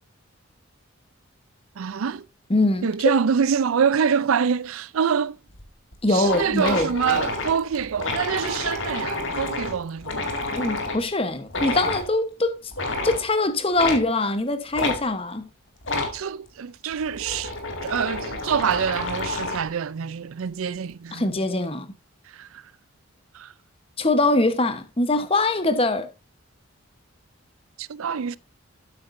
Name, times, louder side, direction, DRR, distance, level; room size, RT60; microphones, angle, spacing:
voice 1, 1.8-2.2 2.8-5.4 6.1-10.4 16.1-17.5 17.8-21.3 22.3-22.6 23.3-23.5 27.8-28.4, right 7 dB, 75° right, 0.4 m, -25 dB
voice 2, 2.5-3.1 6.0-6.9 10.5-12.6 13.0-15.5 21.1-21.9 24.0-26.1, left 2 dB, 25° left, 1.0 m, -23 dB
sound 1, 5.5-5.6 5.9-6.0 6.2-11.0 11.5-12.1 12.7-13.2 13.8-14.0 14.7-15.0 15.8-16.2 16.9-19.7, left 2 dB, 60° left, 2.2 m, -29 dB
12.0 x 8.7 x 2.6 m
head